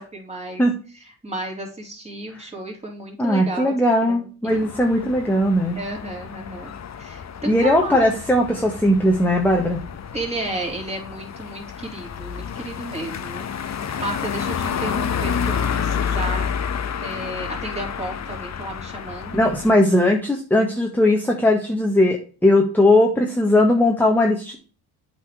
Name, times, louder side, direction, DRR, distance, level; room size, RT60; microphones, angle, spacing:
voice 1, 0.0-0.6 0.9-3.7 4.0-4.7 5.7-8.0 10.1-13.5 14.0-16.5 17.0-19.4, right 2 dB, 15° right, 0 dB, 3.7 m, -33 dB
voice 2, 3.2-5.8 7.5-9.8 19.3-24.6, left 1 dB, 5° left, 1 dB, 1.6 m, -18 dB
sound 1, 4.5-19.7, left 7 dB, 40° left, 1.1 m, -30 dB
8.1 x 4.5 x 4.8 m, 0.37 s
supercardioid pair, 65°, 41 cm